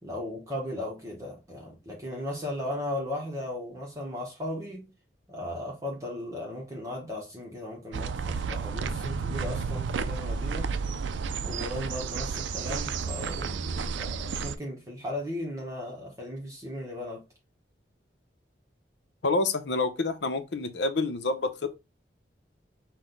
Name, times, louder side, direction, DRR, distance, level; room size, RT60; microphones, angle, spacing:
voice 1, 0.0-4.9 5.3-10.7 11.4-17.2, left 1 dB, 15° right, 0.9 m, -36 dB
sound 1, 7.9-14.5, right 5 dB, 90° right, 0.4 m, -32 dB
voice 2, 19.2-21.8, left 3 dB, 75° left, 0.7 m, -28 dB
6.1 x 2.2 x 3.8 m
head